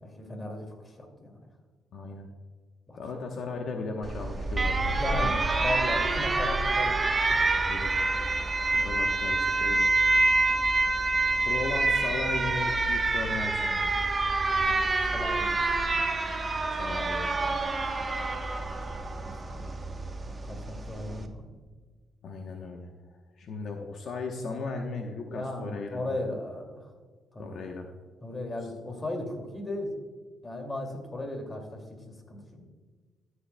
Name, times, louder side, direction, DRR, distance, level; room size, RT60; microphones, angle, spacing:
voice 1, 0.0-1.4 2.9-3.2 4.9-7.4 14.5-16.0 18.6-18.8 19.2-19.7 20.4-21.6 25.2-26.9 27.3-27.6 28.2-29.9 30.4-32.6, left 1 dB, 25° left, 3 dB, 2.4 m, -37 dB
voice 2, 1.9-2.3 2.9-5.4 7.5-7.9 8.7-9.8 11.5-14.0 16.8-17.6 22.2-22.9 23.4-26.2 27.4-27.9, left 3 dB, 60° left, 3 dB, 0.9 m, -36 dB
Alarm, 4.0-21.3, right 3 dB, 25° right, 1.0 m, -27 dB
13.5 x 7.8 x 2.2 m, 1.5 s
cardioid pair, 90°, 0 cm